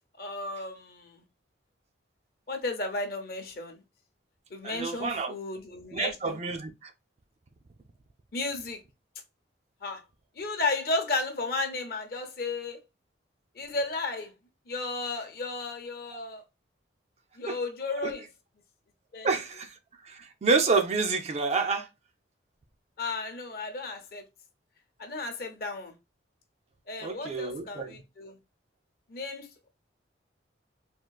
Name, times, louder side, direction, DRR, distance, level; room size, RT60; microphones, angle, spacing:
voice 1, 0.2-1.2 2.5-3.8 4.5-6.4 8.3-8.8 9.8-10.0 10.4-12.8 13.6-14.3 14.7-16.4 17.4-18.3 19.1-19.3 23.0-24.2 25.0-25.9 26.9-28.4 29.1-29.7, left 3 dB, 50° left, 0.6 m, -34 dB
voice 2, 4.6-5.3 5.9-6.9 17.5-17.6 18.0-18.1 19.2-19.7 20.0-21.9 27.0-28.0, right 4 dB, 35° right, 0.3 m, -28 dB
3.6 x 2.3 x 2.3 m
head